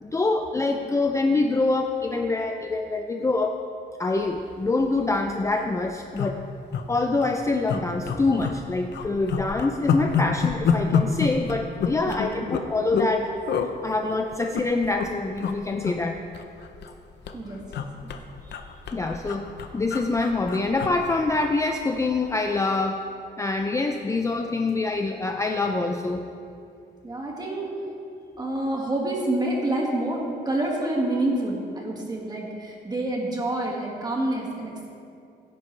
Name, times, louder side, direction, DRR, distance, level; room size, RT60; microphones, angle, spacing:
voice 1, 0.0-3.6 4.0-6.4 6.9-13.3 13.8-16.2 18.9-19.5 19.7-23.0 23.4-26.2, left 3 dB, 15° left, 4 dB, 0.5 m, -25 dB
sound 1, 4.7-4.9 5.2-5.3 5.4-5.7 6.2-6.8 7.2-7.3 7.7-8.6 8.9-13.1 13.5-13.7 14.3-15.1 15.4-15.6 15.8-17.0 17.3-21.8 22.1-22.3, left 6 dB, 70° left, 0.8 m, -28 dB
voice 2, 12.1-12.6 17.3-17.6 18.5-18.8 27.0-27.7 28.4-34.9, right 1 dB, 20° right, -1 dB, 1.9 m, -28 dB
16.0 x 9.5 x 3.3 m, 2.5 s
cardioid pair, 135°, 18 cm